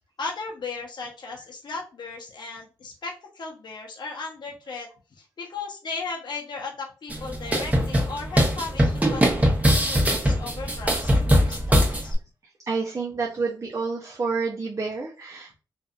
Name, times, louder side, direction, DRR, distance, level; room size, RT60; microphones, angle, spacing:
voice 1, 0.2-12.2, left 4 dB, 55° left, -1 dB, 0.8 m, -36 dB
sound 1, 7.1-12.1, equal, 15° right, 0.9 m, -21 dB
voice 2, 12.7-15.6, right 4 dB, 40° right, -2 dB, 0.6 m, -29 dB
2.6 x 2.4 x 2.4 m, 0.34 s
supercardioid pair, 45°, 9 cm